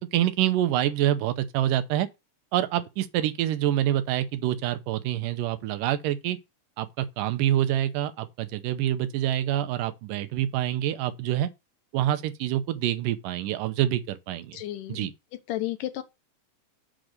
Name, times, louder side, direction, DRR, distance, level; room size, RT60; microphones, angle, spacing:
voice 1, 0.0-2.1 2.5-6.4 6.8-11.5 11.9-14.6 14.9-15.1, right 12 dB, 90° right, 2.5 m, -26 dB
voice 2, 14.5-15.1 15.5-16.0, left 14 dB, 85° left, 2.5 m, -32 dB
7.7 x 3.8 x 6.5 m
omnidirectional pair, 3.7 m